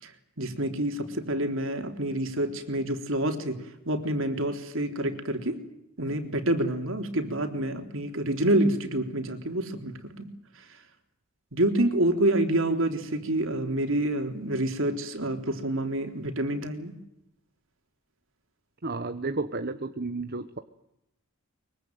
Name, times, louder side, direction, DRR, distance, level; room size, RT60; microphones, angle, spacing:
voice 1, 0.4-5.6 6.0-10.3 11.5-16.9, right 1 dB, 60° right, 6 dB, 3.7 m, -27 dB
voice 2, 18.8-20.6, right 3 dB, 45° right, 10 dB, 1.1 m, -32 dB
23.5 x 23.5 x 9.3 m, 0.83 s
head